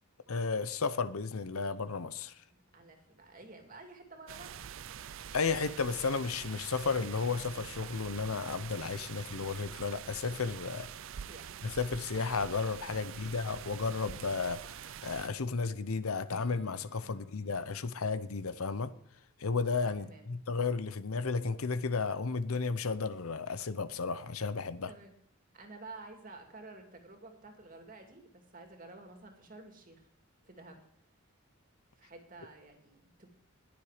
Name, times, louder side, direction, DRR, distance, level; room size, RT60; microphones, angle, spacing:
voice 1, 0.3-2.3 5.3-10.9 11.6-18.9 19.4-24.9, left 4 dB, 75° left, 0.8 m, -33 dB
voice 2, 2.5-4.5 11.3-11.6 12.9-13.3 17.0-17.2 20.0-20.3 24.8-25.1 25.5-30.1 30.4-30.8 32.0-33.3, right 3 dB, 35° right, 2.5 m, -51 dB
sound 1, 4.3-15.3, right 8 dB, 60° right, 0.4 m, -45 dB
Acoustic guitar / Strum, 16.3-20.3, left 1 dB, 45° left, 2.0 m, -58 dB
20.5 x 7.2 x 5.0 m
head